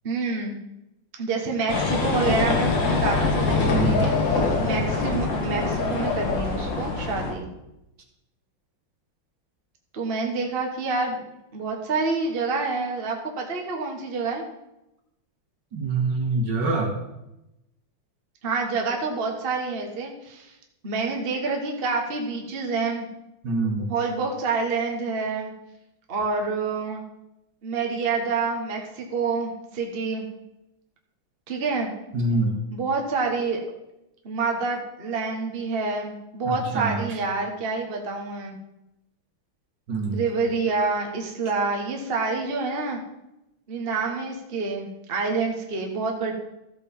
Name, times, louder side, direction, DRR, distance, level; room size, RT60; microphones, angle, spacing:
voice 1, 0.0-0.6 1.2-7.5 9.9-11.2 11.5-14.4 18.4-20.6 20.8-23.1 23.9-25.5 26.1-27.0 27.6-30.2 31.5-31.9 32.7-33.6 34.2-38.6 40.1-43.0 43.7-46.3, right 4 dB, 30° right, 1 dB, 1.4 m, -27 dB
sound 1, 1.7-7.3, left 3 dB, 65° left, 2.3 m, -24 dB
voice 2, 3.7-4.1 15.7-16.9 23.4-23.9 32.1-32.5 36.5-37.0 39.9-40.2, right 3 dB, 60° right, 2 dB, 2.4 m, -25 dB
14.0 x 6.8 x 5.4 m, 0.90 s
omnidirectional pair, 2.2 m